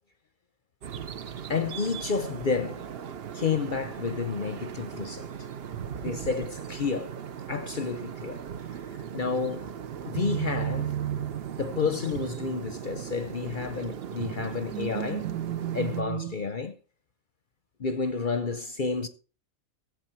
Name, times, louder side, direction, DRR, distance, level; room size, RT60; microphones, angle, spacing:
sound 1, 0.8-16.0, right 8 dB, 55° right, 0.8 m, -39 dB
voice 1, 1.5-2.9 3.3-5.3 6.0-7.1 7.5-8.4 9.1-9.7 10.1-10.9 11.6-15.3 15.7-16.7 17.8-19.1, left 5 dB, 45° left, 0.8 m, -30 dB
sound 2, 6.1-6.7 10.1-13.2 13.7-16.4, right 11 dB, 85° right, 1.2 m, -34 dB
14.0 x 8.2 x 4.5 m
omnidirectional pair, 1.5 m